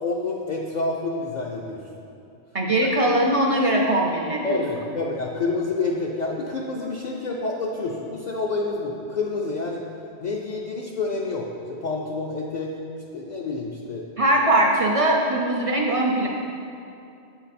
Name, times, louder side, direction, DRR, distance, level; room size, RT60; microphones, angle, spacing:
voice 1, 0.0-1.8 4.4-9.9 10.2-12.8 13.1-14.0, left 3 dB, 55° left, -2 dB, 0.5 m, -28 dB
voice 2, 2.5-4.6 14.2-16.3, right 1 dB, 50° right, 0 dB, 0.4 m, -21 dB
7.7 x 3.9 x 4.1 m, 2.6 s
omnidirectional pair, 1.1 m